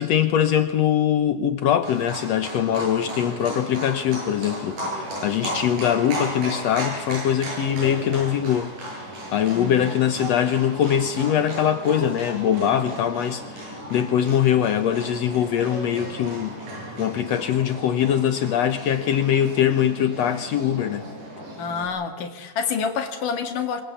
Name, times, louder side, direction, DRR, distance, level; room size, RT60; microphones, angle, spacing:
voice 1, 0.0-8.7 9.3-16.6 17.0-21.1, left 9 dB, 90° left, 10 dB, 1.4 m, -22 dB
Livestock farm animals working animals, 1.8-21.8, right 1 dB, 55° right, 8.5 m, -35 dB
voice 2, 9.5-9.9 21.6-23.8, left 6 dB, 60° left, 6 dB, 3.4 m, -28 dB
27.0 x 23.0 x 8.5 m, 1.1 s
omnidirectional pair, 4.4 m